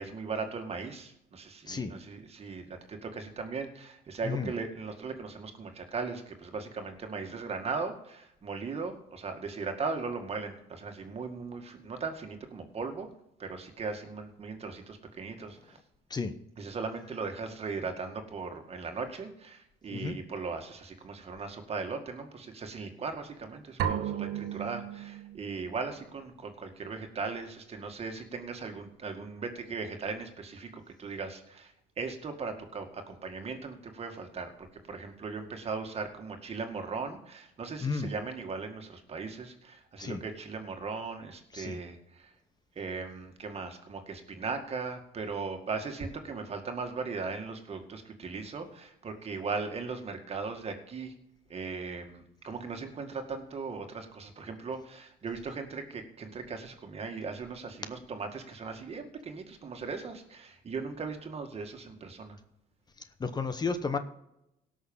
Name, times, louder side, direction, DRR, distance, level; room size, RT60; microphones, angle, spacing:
voice 1, 0.0-13.1 13.4-15.8 16.6-34.5 34.9-42.3 42.8-51.1 51.5-62.4, right 4 dB, 35° right, 5 dB, 2.1 m, -38 dB
sound 1, 23.8-25.6, right 9 dB, 75° right, 1.2 m, -33 dB
voice 2, 63.2-64.0, left 4 dB, 25° left, 10 dB, 0.9 m, -32 dB
17.5 x 6.5 x 5.5 m, 0.83 s
cardioid pair, 110°, 17 cm